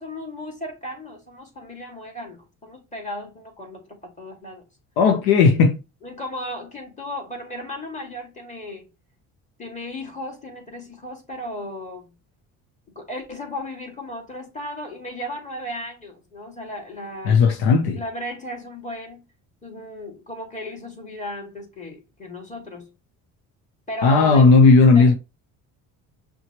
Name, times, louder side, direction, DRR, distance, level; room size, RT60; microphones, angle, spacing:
voice 1, 0.0-4.6 6.0-8.9 9.6-12.1 13.0-17.4 17.9-19.2 19.6-22.9 23.9-24.6 24.9-25.1, left 1 dB, 20° left, 2.1 m, -35 dB
voice 2, 5.0-5.8 17.2-18.0 24.0-25.1, left 4 dB, 85° left, 0.8 m, -15 dB
5.7 x 2.3 x 3.0 m
cardioid pair, 90°, 37 cm